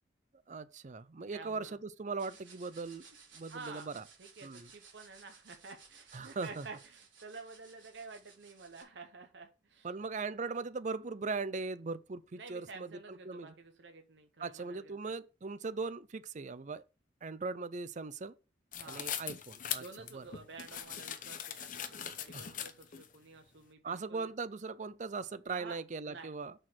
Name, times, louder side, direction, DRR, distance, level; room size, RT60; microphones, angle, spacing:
voice 1, 0.5-3.0 3.3-4.0 4.4-4.7 6.1-6.7 9.8-13.5 14.4-16.8 17.2-18.4 18.9-19.8 20.1-20.2 22.3-22.5 23.8-26.5, right 4 dB, 40° right, 0.5 m, -39 dB
voice 2, 1.3-1.8 3.5-3.9 4.2-9.9 12.3-15.0 18.7-19.1 19.8-24.3 25.5-25.8 26.0-26.3, right 4 dB, 65° right, 0.8 m, -50 dB
sound 1, 2.2-8.8, right 5 dB, 80° right, 3.7 m, -58 dB
sound 2, 18.7-23.1, left 9 dB, 45° left, 0.7 m, -41 dB
6.3 x 4.4 x 6.2 m
head